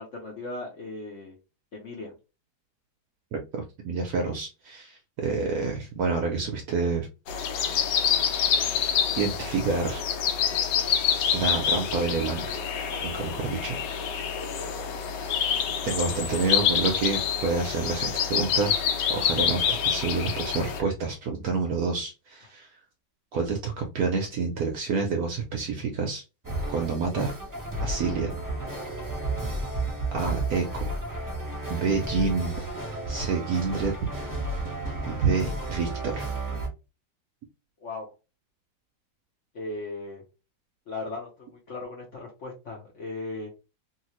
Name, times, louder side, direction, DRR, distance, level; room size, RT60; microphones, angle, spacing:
voice 1, 0.0-1.4 1.7-2.1 37.8-38.1 39.5-40.2 40.9-43.5, left 2 dB, 55° left, -2 dB, 0.9 m, -37 dB
voice 2, 3.8-7.1 9.2-10.1 11.3-12.6 13.0-13.8 15.8-18.8 19.1-22.7 23.3-26.2 26.7-27.3 27.8-28.4 30.1-30.9 31.7-32.7 33.1-33.9 35.1-36.2, right 4 dB, 70° right, 3 dB, 0.9 m, -28 dB
sound 1, 7.3-20.8, left 8 dB, 70° left, 1.2 m, -27 dB
sound 2, 26.4-36.7, right 2 dB, 15° right, 0.7 m, -32 dB
3.1 x 2.7 x 2.9 m, 0.29 s
omnidirectional pair, 2.1 m